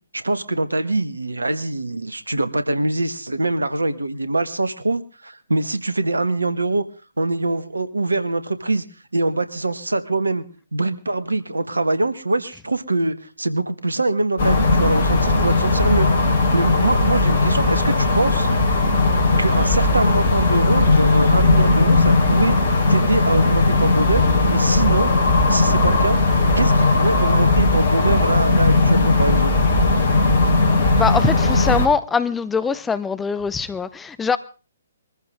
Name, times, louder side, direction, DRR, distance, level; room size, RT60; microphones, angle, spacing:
voice 1, 0.1-6.8 7.2-8.8 9.1-10.4 10.7-18.5 19.4-22.6 22.9-25.1 25.5-26.2 26.6-29.5, right 2 dB, 75° right, 1.7 m, -23 dB
sound 1, 14.4-31.9, left 2 dB, 45° left, 4.9 m, -17 dB
voice 2, 31.0-34.4, left 5 dB, 10° left, 0.8 m, -22 dB
22.0 x 14.5 x 3.8 m
figure-of-eight pair, 130°, 0 cm